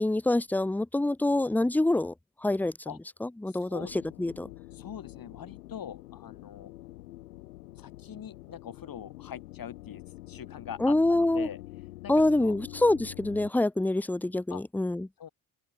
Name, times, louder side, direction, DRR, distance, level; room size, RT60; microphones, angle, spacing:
voice 1, 0.0-2.1 2.4-2.7 3.4-3.9 4.2-4.5 10.8-11.5 12.1-15.1, left 2 dB, 5° left, 0.6 m, -25 dB
voice 2, 3.5-4.0 4.7-6.7 7.7-11.6 12.0-12.6 14.5-14.6 15.2-15.3, left 9 dB, 45° left, 2.8 m, -43 dB
sound 1, 3.8-13.5, left 17 dB, 80° left, 1.5 m, -46 dB
open air
figure-of-eight pair, 45°, 46 cm